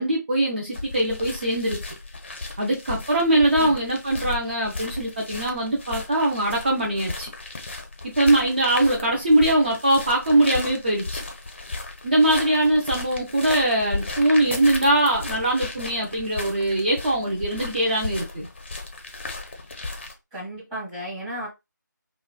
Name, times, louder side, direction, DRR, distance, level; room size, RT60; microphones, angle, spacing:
voice 1, 0.0-1.8 2.6-7.3 8.0-11.2 12.0-18.5, right 1 dB, 30° right, 0.4 m, -22 dB
sound 1, 0.7-20.1, left 3 dB, 35° left, 0.5 m, -35 dB
voice 2, 20.3-21.5, right 1 dB, 5° right, 0.8 m, -34 dB
3.0 x 2.0 x 2.2 m
figure-of-eight pair, 160°, 11 cm